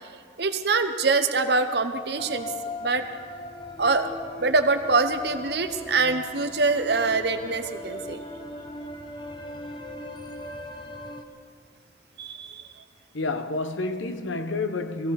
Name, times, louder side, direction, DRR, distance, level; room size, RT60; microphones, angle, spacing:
voice 1, 0.4-2.5 2.8-3.0 3.8-4.1 4.4-8.2 12.2-12.6, right 3 dB, 55° right, 0.9 m, -24 dB
sound 1, 2.2-11.2, left 1 dB, 25° left, 0.8 m, -39 dB
voice 2, 13.1-15.1, left 2 dB, 80° left, 0.9 m, -29 dB
19.5 x 16.0 x 4.2 m
head